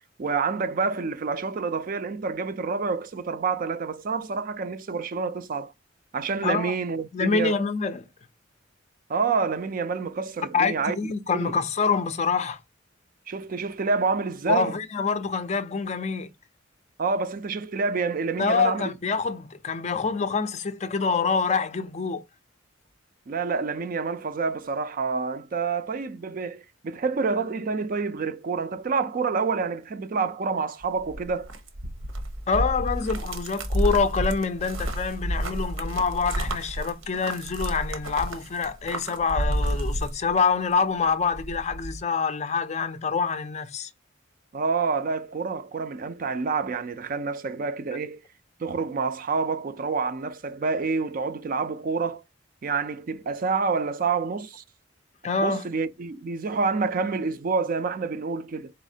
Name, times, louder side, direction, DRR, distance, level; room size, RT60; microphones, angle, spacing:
voice 1, 0.2-5.7 6.1-7.6 9.1-11.0 11.3-11.6 13.3-14.7 17.0-18.9 23.3-31.5 44.5-48.2 48.6-52.2 52.6-54.6 55.4-58.7, right 4 dB, 45° right, 0.4 m, -28 dB
voice 2, 6.4-6.7 7.1-8.1 10.5-12.6 14.5-16.3 18.4-22.2 32.5-43.9 55.2-55.7, left 5 dB, 35° left, 0.4 m, -26 dB
sound 1, 30.8-40.7 41.1-42.0, right 1 dB, 90° right, 0.9 m, -30 dB
4.0 x 4.0 x 2.7 m
head